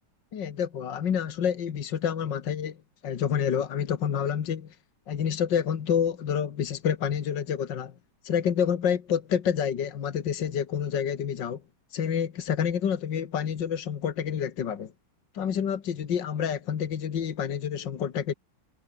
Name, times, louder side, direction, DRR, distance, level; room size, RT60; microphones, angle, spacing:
voice 1, 0.3-2.8 3.0-4.8 5.1-7.9 8.2-11.6 11.9-14.9 15.3-18.3, left 8 dB, 75° left, 2.2 m, -28 dB
omnidirectional pair, 1.9 m